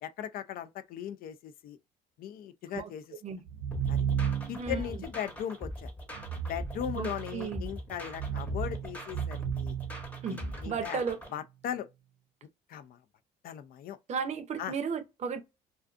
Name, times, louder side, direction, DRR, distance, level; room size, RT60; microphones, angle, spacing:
voice 1, 0.0-1.8 2.2-3.0 3.9-4.1 4.5-5.9 6.5-9.8 10.3-11.0 11.3-11.9 12.7-13.0 13.4-14.0 14.6-14.7, left 10 dB, 60° left, 0.4 m, -38 dB
sound 1, 3.5-4.8 6.1-7.5 8.1-10.6, right 8 dB, 90° right, 0.4 m, -34 dB
sound 2, 3.7-11.3, equal, 10° left, 0.8 m, -41 dB
voice 2, 6.9-7.7 10.2-10.4 10.6-11.2 14.1-15.4, right 6 dB, 40° right, 0.6 m, -34 dB
2.4 x 2.4 x 2.4 m
cardioid pair, 110°, 17 cm